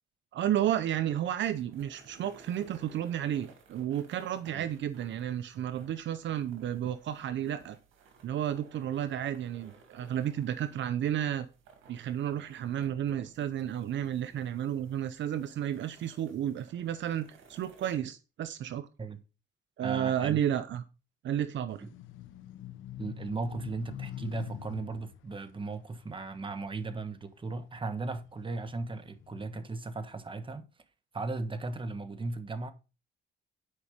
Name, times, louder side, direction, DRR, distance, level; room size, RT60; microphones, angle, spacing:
voice 1, 0.3-7.8 8.2-11.5 11.9-18.9 19.8-20.8 21.2-21.8, right 10 dB, 70° right, 0.7 m, -32 dB
sound 1, 0.9-18.0, right 4 dB, 85° right, 2.3 m, -58 dB
voice 2, 19.8-20.4 21.8-21.9 23.0-30.7 31.1-32.7, right 3 dB, 25° right, 1.3 m, -37 dB
sound 2, 21.7-27.3 27.8-29.6, left 11 dB, 85° left, 0.9 m, -46 dB
9.9 x 5.4 x 5.1 m
cardioid pair, 90°, 20 cm